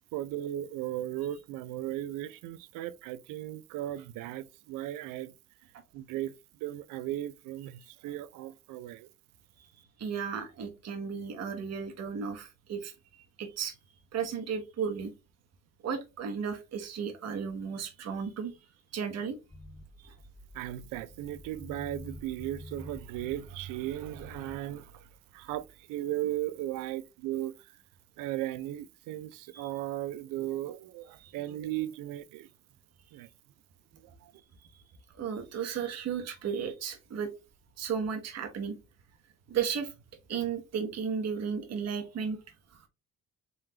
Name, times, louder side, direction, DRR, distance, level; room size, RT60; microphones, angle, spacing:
voice 1, 0.1-5.3 5.9-6.3 6.6-9.1 20.5-27.8 28.2-32.5 33.1-33.3 33.9-34.3, right 14 dB, 75° right, 0.5 m, -36 dB
voice 2, 10.0-13.8 14.1-15.1 15.8-18.5 18.9-19.4 20.0-20.1 29.5-29.7 31.2-31.3 35.2-37.3 37.8-38.8 39.5-39.9 40.3-42.4 42.7-42.8, right 6 dB, 50° right, 0.9 m, -34 dB
sound 1, 19.5-24.6, left 1 dB, 15° left, 0.8 m, -48 dB
3.8 x 3.1 x 2.8 m
supercardioid pair, 65°, 33 cm